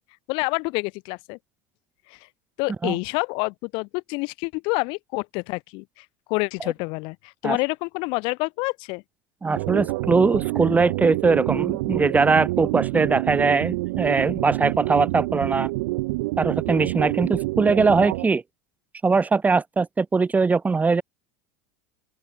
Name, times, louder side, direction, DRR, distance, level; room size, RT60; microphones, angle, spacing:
voice 1, 0.3-1.4 2.1-2.2 2.6-9.0, left 29 dB, 60° left, 1.1 m, -28 dB
voice 2, 9.4-15.7 16.4-18.4 19.0-21.0, right 4 dB, 15° right, 1.0 m, -21 dB
sound 1, 9.5-18.3, right 22 dB, 75° right, 1.1 m, -27 dB
open air
hypercardioid pair, 100°, 9 cm